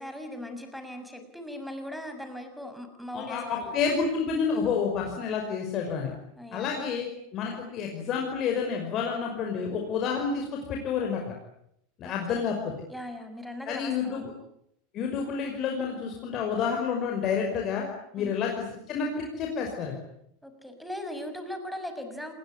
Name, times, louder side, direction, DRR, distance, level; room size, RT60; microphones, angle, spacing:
voice 1, 0.0-3.7 6.3-6.8 12.0-12.6 12.9-14.3 18.2-18.4 20.4-22.3, left 1 dB, ahead, 6 dB, 6.5 m, -39 dB
voice 2, 3.1-6.1 6.5-7.1 7.3-11.2 12.0-12.5 13.7-14.3 14.9-17.8 18.1-19.9, left 6 dB, 40° left, 1 dB, 5.6 m, -29 dB
27.5 x 22.0 x 9.9 m, 0.76 s
figure-of-eight pair, 85°, 0 cm